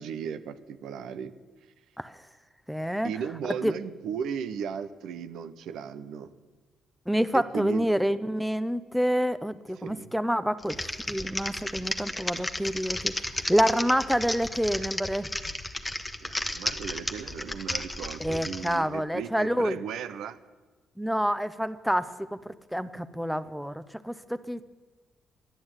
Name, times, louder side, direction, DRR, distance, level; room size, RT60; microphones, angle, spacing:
voice 1, 0.0-1.3 3.0-6.3 7.3-7.9 9.8-10.1 16.2-20.4, right 7 dB, 80° right, 12 dB, 0.7 m, -36 dB
voice 2, 2.7-3.1 3.5-3.7 7.1-10.8 11.1-15.3 18.2-19.8 21.0-22.4 22.7-24.6, equal, ahead, 12 dB, 0.7 m, -27 dB
Typing, 10.6-18.8, left 1 dB, 15° left, 1.1 m, -33 dB
11.5 x 11.0 x 8.8 m, 1.3 s
cardioid pair, 75°, 0 cm